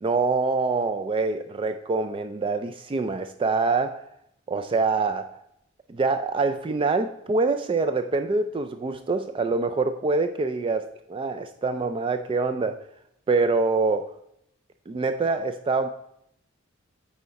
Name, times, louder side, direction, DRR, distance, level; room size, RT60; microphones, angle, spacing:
voice 1, 0.0-4.0 4.5-5.3 5.9-12.8 13.3-14.1 14.9-15.9, right 3 dB, 25° right, 8 dB, 0.3 m, -25 dB
8.4 x 4.3 x 4.0 m, 0.74 s
head